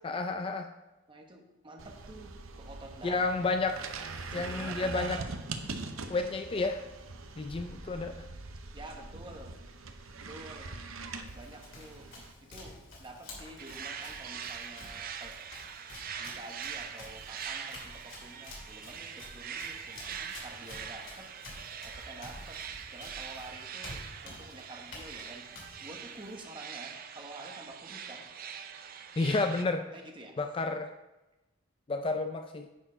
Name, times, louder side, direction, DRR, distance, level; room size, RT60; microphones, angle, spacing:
voice 1, 0.0-0.7 3.0-3.8 4.3-5.2 6.1-6.8 7.4-8.2 29.2-29.9 30.4-30.9 31.9-32.7, left 3 dB, 25° left, 7 dB, 0.4 m, -31 dB
voice 2, 1.1-3.4 4.3-5.3 8.7-9.6 10.3-10.7 11.3-12.1 12.4-15.3 16.2-21.3 21.8-22.6 22.9-25.5 25.8-28.3 29.9-30.7, right 2 dB, 25° right, 3 dB, 1.1 m, -49 dB
sound 1, 1.8-12.3, right 3 dB, 85° right, 0.8 m, -42 dB
Run, 11.2-26.4, left 2 dB, 65° left, 2.9 m, -50 dB
sound 2, 13.6-29.6, right 7 dB, 45° right, 0.5 m, -43 dB
9.8 x 4.6 x 5.0 m, 1.0 s
head